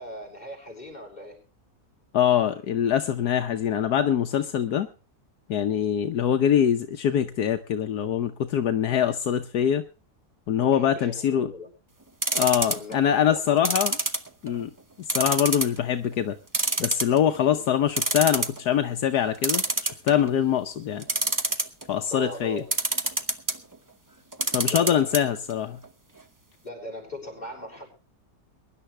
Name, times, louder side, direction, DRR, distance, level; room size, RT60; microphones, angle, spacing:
voice 1, 0.0-1.4 10.6-11.7 12.6-13.9 16.7-17.8 20.7-21.0 22.1-22.7 24.6-25.4 26.6-27.9, equal, 25° left, -1 dB, 6.5 m, -40 dB
voice 2, 2.1-4.9 5.5-9.8 10.5-11.5 12.4-14.0 14.4-14.7 15.0-16.4 16.8-21.1 21.9-22.6 24.5-25.8, left 9 dB, 80° left, 6 dB, 1.4 m, -24 dB
sound 1, 12.2-12.9 13.6-14.6 15.1-15.8 16.1-16.2 16.5-17.4 17.7-17.8 18.0-18.6 19.4-20.3 21.0-21.8 22.7-23.6 24.3-25.2 25.5-25.6 25.8-25.9, right 2 dB, 15° right, 0.7 m, -25 dB
23.0 x 11.0 x 3.3 m, 0.33 s
omnidirectional pair, 1.7 m